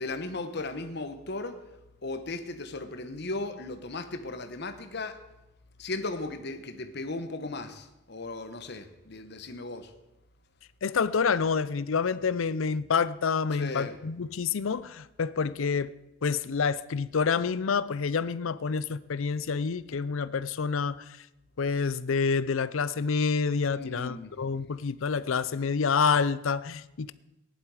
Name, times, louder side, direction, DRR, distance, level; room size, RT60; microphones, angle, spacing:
voice 1, 0.0-1.6 2.0-5.2 5.8-9.9 13.5-14.0 23.7-24.4, left 2 dB, 50° left, 1.1 m, -36 dB
voice 2, 10.8-15.9 16.2-21.0 21.6-27.1, left 5 dB, 75° left, 0.5 m, -28 dB
16.0 x 11.0 x 4.9 m
head